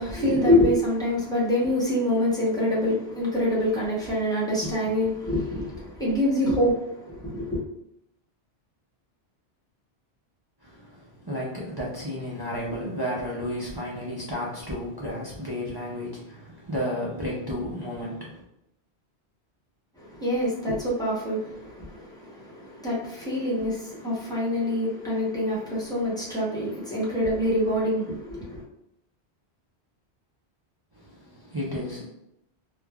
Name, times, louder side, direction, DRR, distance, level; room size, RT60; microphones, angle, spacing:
voice 1, 0.0-7.6 20.0-28.6, left 1 dB, 5° left, -7 dB, 0.6 m, -25 dB
voice 2, 10.6-18.4 30.9-32.1, equal, 40° right, -5 dB, 0.3 m, -32 dB
3.1 x 2.0 x 2.3 m, 0.79 s
omnidirectional pair, 1.1 m